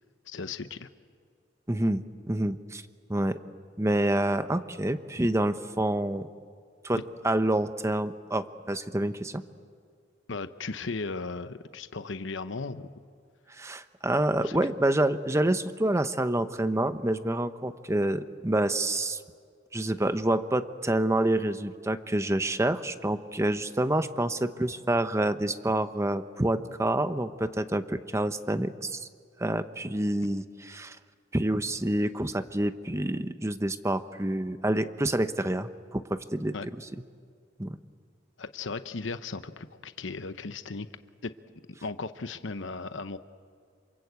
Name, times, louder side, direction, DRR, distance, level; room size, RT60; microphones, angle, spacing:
voice 1, 0.2-0.9 10.3-12.9 14.4-14.6 36.5-36.7 38.4-40.9 41.2-41.3 41.8-43.2, left 4 dB, 80° left, 11 dB, 0.9 m, -36 dB
voice 2, 1.7-2.8 3.1-3.4 3.8-6.3 6.8-9.4 13.6-19.2 19.7-29.0 29.4-31.0 31.3-36.5 37.6-37.8, right 1 dB, 15° right, 10 dB, 0.9 m, -27 dB
28.0 x 26.5 x 8.1 m, 2.1 s
head